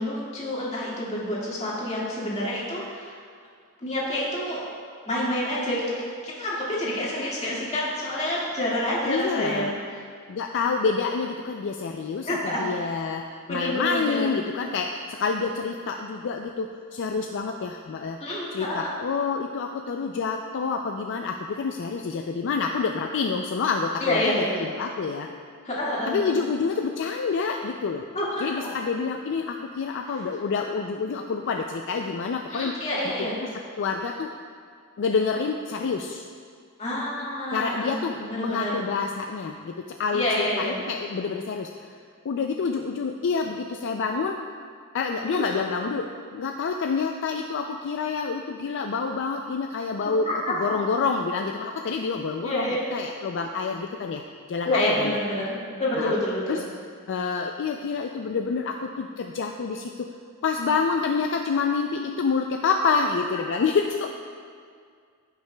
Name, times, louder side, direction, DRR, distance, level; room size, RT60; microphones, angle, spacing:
voice 1, 0.0-3.2 3.8-4.6 5.1-5.9 6.2-9.7 12.3-12.6 13.5-14.3 18.2-18.9 24.0-24.6 25.6-26.3 28.1-28.5 32.5-33.3 36.8-38.8 40.1-40.8 45.2-45.6 50.3-50.5 52.4-52.8 54.6-56.6, left 1 dB, 30° left, -6 dB, 1.9 m, -28 dB
voice 2, 9.0-9.7 10.3-13.2 13.5-18.2 18.5-25.3 26.1-28.0 28.4-32.7 33.2-33.5 33.8-34.3 35.0-36.2 37.5-42.0 42.2-44.4 44.9-54.2 54.5-55.2 56.0-56.1 56.5-56.6 57.1-60.1 60.4-64.1, left 5 dB, 60° left, 3 dB, 0.4 m, -28 dB
15.0 x 5.8 x 2.3 m, 2.1 s
head